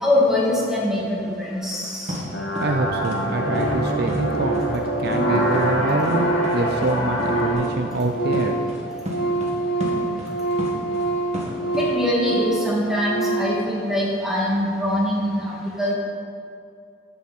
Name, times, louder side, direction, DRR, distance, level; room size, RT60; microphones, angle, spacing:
voice 1, 0.0-2.2 11.8-15.9, left 1 dB, ahead, -6 dB, 2.3 m, -23 dB
sound 1, 2.1-2.2 2.6-2.7 3.0-3.2 3.5-3.7 4.1-4.2 4.5-4.7 5.0-5.2 5.5-5.7 6.0-6.2 6.4-6.6 6.8-6.9 7.2-7.3 7.6-7.7 8.0-8.1 8.3-8.8 9.1-9.5 9.8-11.1 11.3-11.9, equal, 35° right, 1.9 m, -31 dB
sound 2, 2.3-7.5, equal, 65° left, 2.3 m, -25 dB
Organ, 2.5-2.6 2.8-2.9 3.1-3.2 3.5-3.9 4.1-7.7 8.0-13.7, right 3 dB, 85° left, 1.5 m, -26 dB
voice 2, 2.6-8.6, right 2 dB, 55° right, 4 dB, 0.6 m, -26 dB
14.0 x 7.5 x 4.3 m, 2.5 s
head